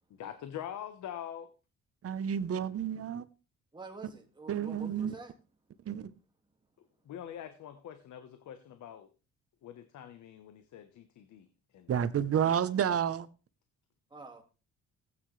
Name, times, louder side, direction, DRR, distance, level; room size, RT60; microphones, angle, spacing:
voice 1, 0.1-1.5 7.0-9.1 9.6-11.5 11.7-12.1, left 10 dB, 70° left, 1.1 m, -44 dB
voice 2, 2.0-3.2 4.5-5.1 5.9-6.1 11.9-13.3, right 8 dB, 50° right, 0.9 m, -30 dB
voice 3, 3.7-5.3 14.1-14.4, right 3 dB, 15° right, 2.1 m, -47 dB
15.5 x 8.8 x 3.3 m
cardioid pair, 90°, 30 cm